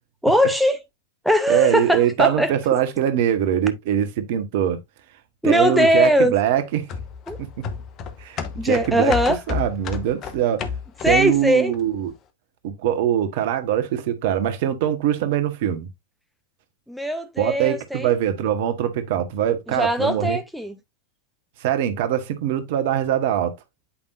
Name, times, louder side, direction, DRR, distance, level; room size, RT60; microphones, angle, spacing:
voice 1, 0.2-0.8 1.2-2.5 5.4-6.3 7.3-7.4 8.6-9.4 11.0-11.7 16.9-18.2 19.7-20.7, equal, ahead, 0.7 m, -20 dB
voice 2, 1.5-4.8 5.4-6.9 7.4-7.5 8.2-9.1 9.5-10.7 11.0-12.1 12.6-15.9 17.4-20.4 21.6-23.5, right 10 dB, 50° right, 1.3 m, -22 dB
sound 1, 6.9-11.4 11.7-11.8, left 6 dB, 35° left, 1.2 m, -31 dB
8.5 x 5.3 x 2.6 m
figure-of-eight pair, 90°, 0 cm